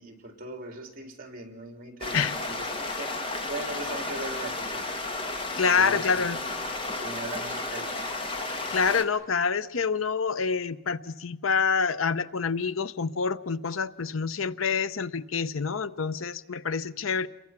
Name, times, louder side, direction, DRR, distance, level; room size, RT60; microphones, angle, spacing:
voice 1, 0.0-3.1 3.5-5.0 5.7-8.1, right 2 dB, 45° right, 4 dB, 3.6 m, -40 dB
sound 1, 2.0-9.0, left 2 dB, 25° left, 1.8 m, -33 dB
voice 2, 5.6-6.4 8.5-17.3, left 5 dB, 85° left, 15 dB, 0.8 m, -27 dB
29.0 x 22.5 x 6.0 m, 0.95 s
head